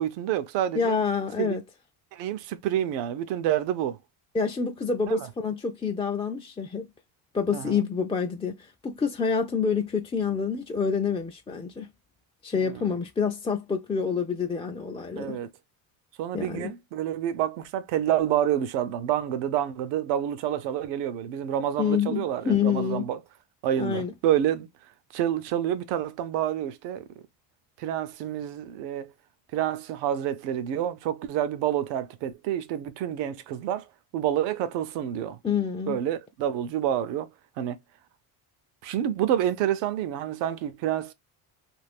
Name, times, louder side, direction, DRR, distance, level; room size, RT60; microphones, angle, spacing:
voice 1, 0.0-1.0 1.4-1.6 2.1-4.0 5.1-5.3 7.5-7.8 12.5-12.9 15.2-15.5 16.2-23.2 23.6-24.7 25.1-27.0 27.8-29.1 29.5-33.9 34.1-35.4 35.9-37.3 37.6-37.8 38.8-41.1, right 11 dB, 85° right, 0.7 m, -28 dB
voice 2, 0.7-1.6 4.3-6.9 7.3-11.9 12.4-15.4 16.3-16.7 21.8-23.0 23.8-24.1 35.4-36.0, left 6 dB, 15° left, 0.4 m, -27 dB
2.6 x 2.4 x 3.4 m
supercardioid pair, 90°, 41 cm